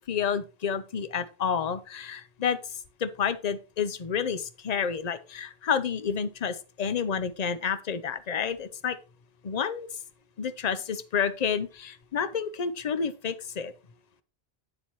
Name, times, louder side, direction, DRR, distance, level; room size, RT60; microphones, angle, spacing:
voice 1, 0.1-2.6 3.0-9.0 9.4-9.9 10.4-13.7, left 7 dB, 45° left, 12 dB, 0.7 m, -29 dB
8.8 x 7.3 x 3.1 m, 0.31 s
omnidirectional pair, 1.1 m